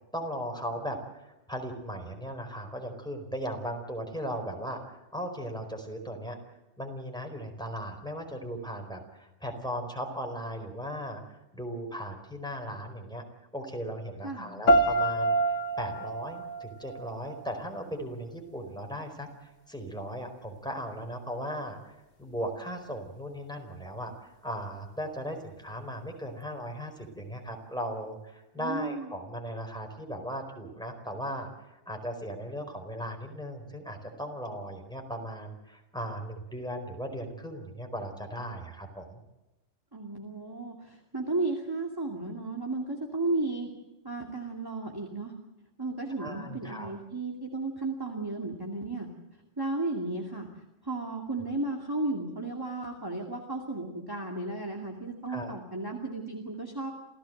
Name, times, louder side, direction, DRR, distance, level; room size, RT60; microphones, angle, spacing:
voice 1, 0.1-6.4 6.8-13.2 13.5-39.2 46.2-46.9 55.3-55.6, equal, 5° left, 3 dB, 4.5 m, -37 dB
voice 2, 14.2-14.6 28.6-29.1 39.9-43.7 44.0-45.3 45.8-49.1 49.6-50.5 50.8-56.9, right 2 dB, 20° right, 1 dB, 2.4 m, -34 dB
sound 1, 14.7-17.7, right 2 dB, 70° left, 1.8 m, -27 dB
28.0 x 16.0 x 7.8 m, 1.0 s
omnidirectional pair, 1.3 m